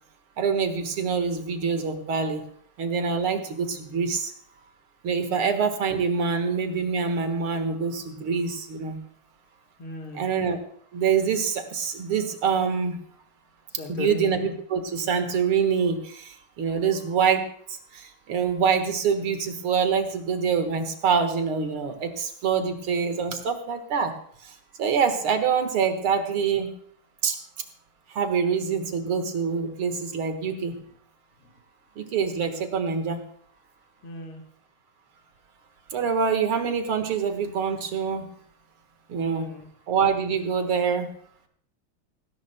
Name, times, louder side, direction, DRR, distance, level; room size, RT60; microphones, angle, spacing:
voice 1, 0.4-2.4 2.8-4.3 5.0-9.0 10.2-10.6 10.9-13.0 13.9-24.1 24.8-26.7 27.2-27.4 28.1-30.7 32.0-33.2 35.9-38.3 39.1-39.5 39.9-41.1, right 6 dB, 90° right, 6 dB, 2.4 m, -25 dB
voice 2, 9.8-10.3 13.8-14.3 31.4-31.5 34.0-34.4 39.2-39.7, left 3 dB, 85° left, 1 dB, 2.4 m, -37 dB
18.0 x 17.5 x 2.2 m, 0.62 s
omnidirectional pair, 2.3 m